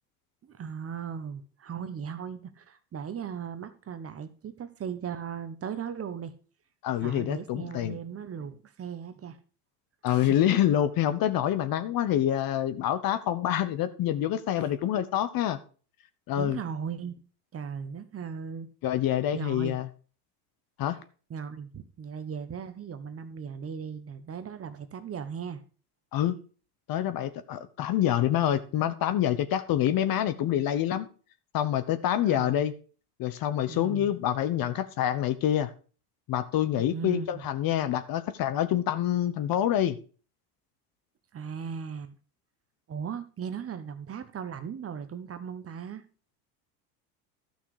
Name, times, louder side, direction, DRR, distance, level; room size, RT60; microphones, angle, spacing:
voice 1, 0.4-6.3 7.0-9.4 10.1-10.3 14.5-14.7 16.4-17.1 17.5-18.7 19.3-19.8 21.3-25.6 32.2-32.5 33.7-34.1 36.8-37.5 41.3-42.2 42.9-46.0, right 7 dB, 30° right, 1.2 m, -37 dB
voice 2, 6.8-8.0 10.0-15.6 16.3-16.6 18.8-19.9 20.8-21.0 26.1-26.4 26.9-31.1 31.5-32.7 33.2-35.7 36.3-40.0, left 11 dB, 45° left, 1.1 m, -26 dB
12.0 x 6.3 x 4.8 m
supercardioid pair, 105°, 46 cm